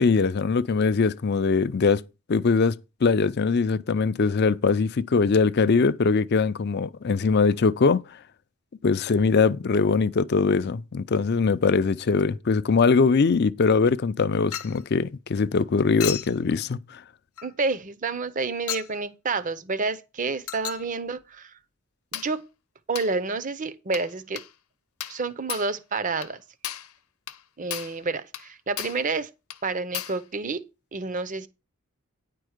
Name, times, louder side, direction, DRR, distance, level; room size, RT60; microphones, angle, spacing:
voice 1, 0.0-2.0 2.3-8.0 8.8-17.0, left 4 dB, 50° left, 0.4 m, -22 dB
Chink clink, 14.5-14.8 16.0-16.4 17.4-17.5 18.7-18.9 20.5-20.9 22.1-22.4 22.9-23.1 23.9-24.1 24.4-24.5 25.0-25.2 25.5-25.7 26.2-26.3 26.6-26.9 27.3-27.4 27.7-28.0 28.3-28.5 28.8-29.0 29.5-29.6 29.9-30.2, left 11 dB, 75° left, 0.8 m, -34 dB
voice 2, 17.4-21.5 22.1-22.4 22.9-24.4 25.1-26.4 27.6-29.3 29.6-30.6 30.9-31.5, right 3 dB, 35° right, 0.6 m, -29 dB
9.8 x 4.6 x 6.4 m
head